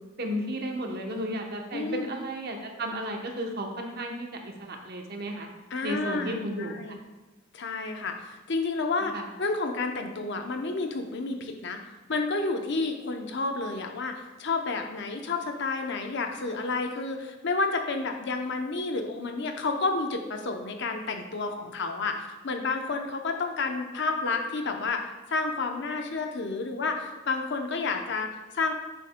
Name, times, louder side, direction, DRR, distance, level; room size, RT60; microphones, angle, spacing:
voice 1, 0.2-5.5 5.8-6.8 9.1-9.3, right 1 dB, 50° right, 2 dB, 0.9 m, -33 dB
voice 2, 1.7-2.1 5.7-7.0 7.5-11.8 12.1-28.7, left 3 dB, 60° left, 4 dB, 0.7 m, -30 dB
8.6 x 6.7 x 2.2 m, 1.2 s
head